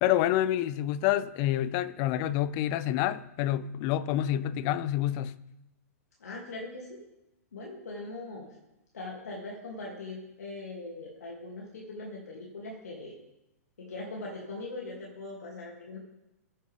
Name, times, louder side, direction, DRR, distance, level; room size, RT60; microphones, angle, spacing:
voice 1, 0.0-5.4, left 12 dB, 40° left, 0.5 m, -28 dB
voice 2, 6.2-7.0 7.5-8.5 8.9-13.1 13.8-16.0, left 2 dB, 75° left, 2.6 m, -41 dB
14.5 x 8.5 x 3.5 m
hypercardioid pair, 120°, 9 cm